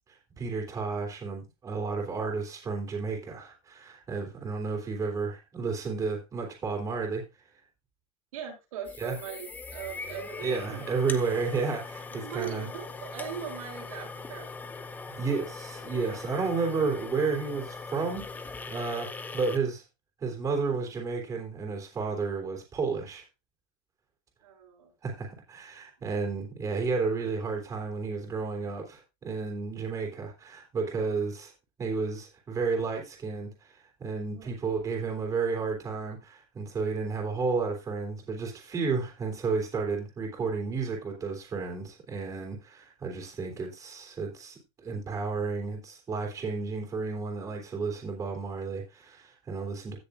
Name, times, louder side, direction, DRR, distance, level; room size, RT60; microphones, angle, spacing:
voice 1, 0.4-7.2 9.0-9.2 10.4-12.7 15.1-19.8 20.2-23.2 25.0-31.5 31.8-50.0, right 4 dB, 20° right, 3.1 m, -32 dB
voice 2, 8.3-10.8 12.1-14.5 24.4-24.9 34.3-34.6, right 8 dB, 85° right, 6.4 m, -40 dB
sound 1, 8.8-19.6, left 4 dB, 10° left, 0.8 m, -41 dB
16.5 x 6.7 x 2.5 m
supercardioid pair, 160°, 18 cm